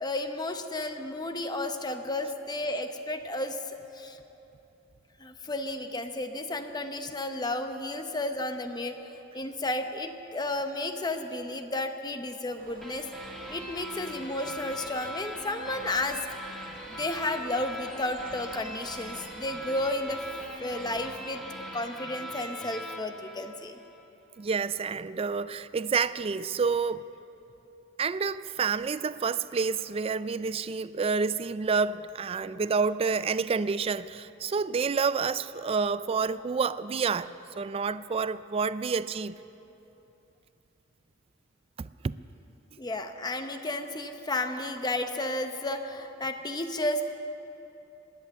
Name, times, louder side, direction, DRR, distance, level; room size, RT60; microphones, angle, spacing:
voice 1, 0.0-4.2 5.2-9.0 9.3-13.1 13.5-16.2 16.9-20.2 20.6-21.4 21.7-23.8 42.8-47.1, left 2 dB, 20° left, 0.8 m, -32 dB
Bird, 12.6-21.4, right 3 dB, 45° right, 1.5 m, -51 dB
sound 1, 12.8-24.1, equal, ahead, 1.5 m, -41 dB
voice 2, 24.4-27.0 28.0-39.4 41.8-42.1, right 5 dB, 30° right, 0.3 m, -29 dB
18.0 x 11.0 x 7.1 m
head